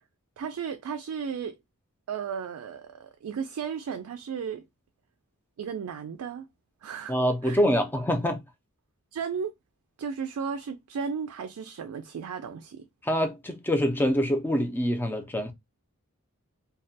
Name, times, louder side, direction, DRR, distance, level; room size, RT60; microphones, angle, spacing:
voice 1, 0.4-1.6 2.1-4.6 5.6-6.5 6.8-7.2 7.4-7.6 9.1-9.5 10.0-12.9, right 6 dB, 80° right, 0.3 m, -34 dB
voice 2, 7.1-8.4 13.0-15.5, equal, 10° left, 0.4 m, -25 dB
2.2 x 2.1 x 2.6 m
head